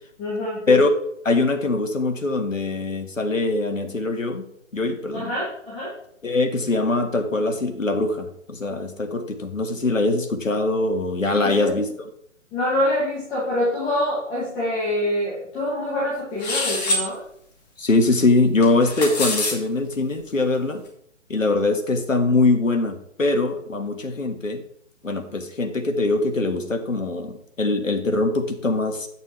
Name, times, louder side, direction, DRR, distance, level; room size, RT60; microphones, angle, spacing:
voice 1, 0.2-0.6 5.1-5.9 11.3-11.7 12.5-17.2, left 1 dB, 15° left, -7 dB, 2.1 m, -25 dB
voice 2, 1.2-4.5 4.7-5.3 6.2-12.1 17.8-20.8 21.3-24.6 25.0-29.1, left 2 dB, 80° left, 6 dB, 1.7 m, -22 dB
sound 1, 16.4-17.0 18.6-19.5, left 2 dB, 35° left, 2.4 m, -24 dB
9.0 x 8.8 x 3.2 m, 0.71 s
figure-of-eight pair, 145°, 39 cm